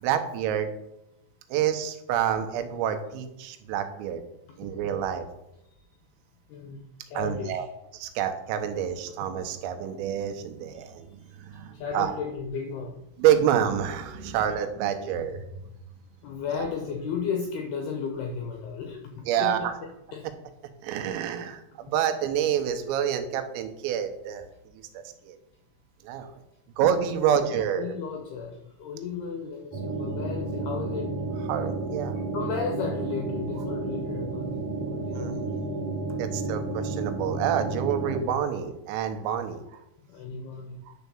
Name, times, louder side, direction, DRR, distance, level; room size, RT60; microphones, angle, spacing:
voice 1, 0.0-0.7 1.5-4.2 4.6-5.3 7.2-7.7 7.9-11.1 11.4-12.1 13.2-15.4 16.6-16.7 19.3-19.6 20.8-24.4 25.0-25.4 26.0-26.4 26.8-27.9 31.5-32.2 35.2-35.4 36.2-39.6 40.9-41.0, right 9 dB, 90° right, 7 dB, 3.5 m, -27 dB
voice 2, 6.5-7.7 10.7-10.9 11.3-12.9 16.2-20.3 27.2-31.1 32.3-34.6 34.9-35.5 40.0-40.8, left 5 dB, 85° left, 2 dB, 2.3 m, -34 dB
sound 1, 29.7-38.2, right 3 dB, 45° right, 2.6 m, -31 dB
10.5 x 4.6 x 7.0 m, 0.86 s
omnidirectional pair, 5.9 m